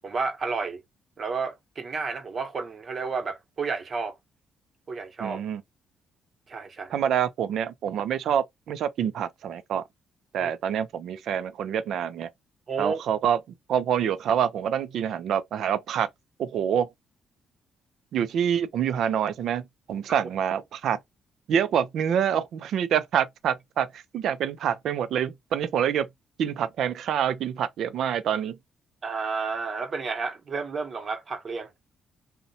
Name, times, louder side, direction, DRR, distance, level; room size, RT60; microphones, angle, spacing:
voice 1, 0.0-0.8 1.2-4.2 4.9-5.4 6.5-6.9 10.4-10.5 12.7-13.0 20.1-20.2 29.0-31.7, right 4 dB, 45° right, 0.8 m, -31 dB
voice 2, 5.2-5.6 6.9-9.8 10.3-12.3 12.8-13.4 13.7-16.1 16.4-16.9 18.1-19.6 19.9-21.0 21.5-26.1 26.4-28.6, right 9 dB, 75° right, 0.4 m, -26 dB
2.7 x 2.1 x 2.6 m
cardioid pair, 90°, 0 cm